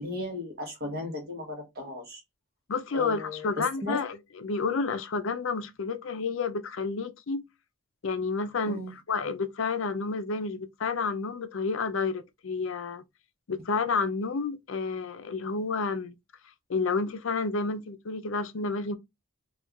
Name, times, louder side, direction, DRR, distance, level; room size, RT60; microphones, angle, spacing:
voice 1, 0.0-2.2 2.9-4.0 8.7-8.9, left 2 dB, 45° right, 1.2 m, -36 dB
voice 2, 2.7-7.4 8.0-8.8 9.1-13.0 13.5-16.1 16.7-19.0, left 4 dB, 65° left, 0.5 m, -30 dB
4.4 x 2.4 x 2.3 m
head